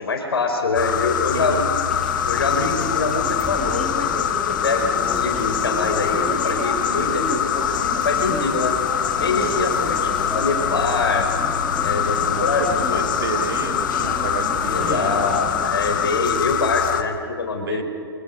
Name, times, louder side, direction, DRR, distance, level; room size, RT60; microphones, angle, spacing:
voice 1, 0.0-1.7 2.2-8.7 9.2-11.3 11.8-13.2 14.6-17.8, left 3 dB, 75° left, 4 dB, 4.9 m, -25 dB
sound 1, 0.7-17.0, left 9 dB, 55° left, 1.5 m, -24 dB
voice 2, 1.3-1.8 9.3-9.8 12.4-15.6 17.6-17.8, right 7 dB, 60° right, 10 dB, 1.6 m, -31 dB
Chatter, 1.9-16.2, left 1 dB, ahead, 2.4 m, -32 dB
28.0 x 16.0 x 6.4 m, 2.3 s
figure-of-eight pair, 125°, 13 cm